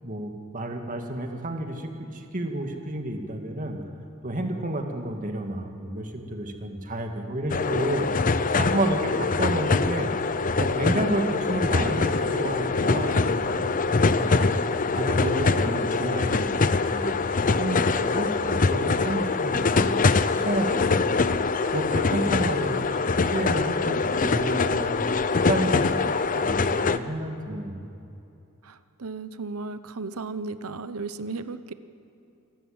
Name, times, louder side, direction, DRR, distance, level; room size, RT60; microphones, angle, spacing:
voice 1, 0.0-3.8 4.2-8.1 8.6-10.1 10.6-14.5 14.9-16.6 16.9-17.2 17.6-20.0 20.3-21.2 21.7-24.9 25.5-27.9, right 1 dB, 35° right, 4 dB, 2.1 m, -30 dB
sound 1, 7.5-27.0, left 4 dB, 35° left, 0.6 m, -24 dB
voice 2, 28.6-31.7, right 3 dB, 80° right, 12 dB, 0.9 m, -35 dB
27.0 x 13.0 x 8.8 m, 2.7 s
head